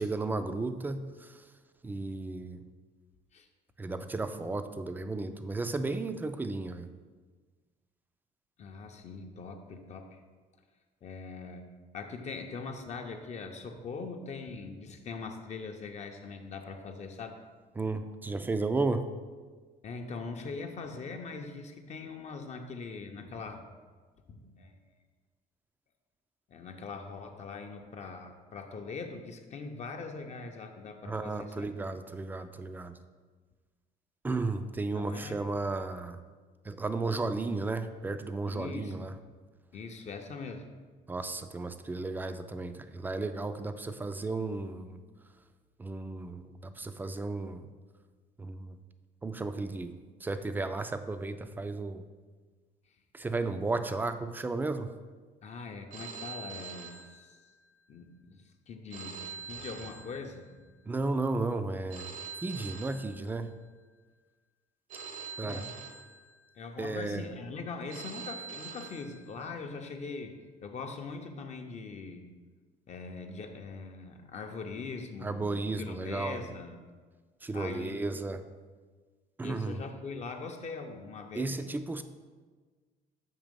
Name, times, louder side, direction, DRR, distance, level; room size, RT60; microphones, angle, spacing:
voice 1, 0.0-1.5 1.8-2.6 3.8-6.9 17.8-19.1 31.1-33.0 34.2-36.2 36.6-39.1 41.1-45.0 45.8-47.7 48.4-48.8 49.2-49.9 50.2-52.0 53.1-54.9 60.9-62.1 62.4-63.5 65.4-65.6 66.8-67.2 75.2-76.5 77.4-78.4 79.4-79.8 81.3-82.0, right 3 dB, 10° right, 10 dB, 0.3 m, -34 dB
voice 2, 8.6-10.2 11.0-11.6 11.9-17.4 19.8-23.7 24.3-24.8 26.5-31.7 34.9-35.4 38.5-38.9 39.7-40.7 55.4-57.4 57.9-60.7 65.4-65.7 66.6-70.3 70.6-72.2 72.9-76.8 77.5-78.1 79.4-81.6, left 4 dB, 45° left, 4 dB, 0.6 m, -42 dB
Telephone, 55.9-57.8 58.9-60.8 61.9-63.8 64.9-66.8 67.9-69.8, right 6 dB, 50° right, 0.7 m, -45 dB
7.3 x 2.9 x 5.2 m, 1.4 s
cardioid pair, 110°, 17 cm